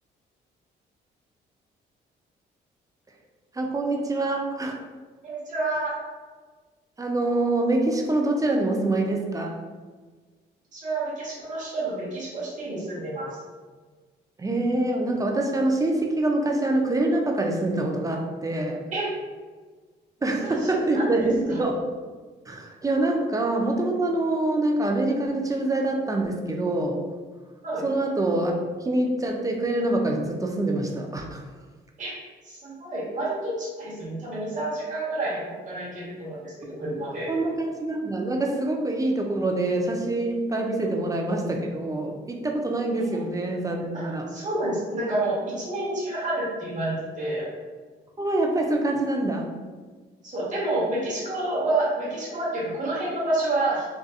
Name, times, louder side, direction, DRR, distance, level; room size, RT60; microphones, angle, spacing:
voice 1, 3.5-4.8 7.0-9.6 14.4-18.9 20.2-21.8 22.5-27.0 27.8-31.5 37.3-44.3 48.2-49.5, right 2 dB, 15° right, 1 dB, 0.4 m, -25 dB
voice 2, 5.2-6.0 10.7-13.3 18.9-19.1 20.2-21.2 21.5-21.7 27.6-27.9 32.0-32.2 32.4-37.3 43.9-47.5 50.2-53.9, right 2 dB, 35° right, -6 dB, 1.0 m, -29 dB
2.5 x 2.4 x 2.4 m, 1.4 s
supercardioid pair, 55°, 21 cm